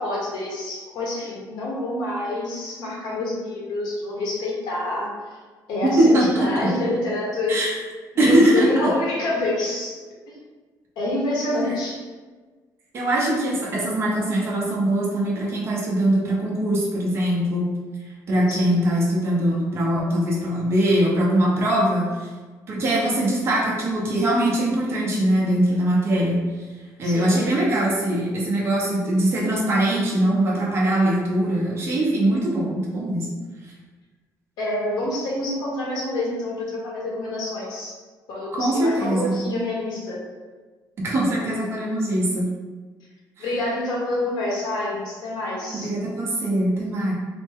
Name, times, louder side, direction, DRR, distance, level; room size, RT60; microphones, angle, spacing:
voice 1, 0.0-5.1 5.7-7.6 8.1-9.9 11.0-12.0 18.5-18.7 27.0-27.5 34.6-37.9 38.3-40.2 43.4-45.9, left 1 dB, 85° left, -4 dB, 1.3 m, -27 dB
voice 2, 5.8-6.7 7.5-7.7 8.2-8.7 12.9-17.7 18.3-22.3 22.7-26.4 27.0-33.3 38.5-39.4 41.0-42.5 43.4-43.5 45.7-47.1, right 1 dB, 35° right, -4 dB, 0.8 m, -21 dB
4.1 x 2.2 x 3.5 m, 1.4 s
cardioid pair, 180°, 7 cm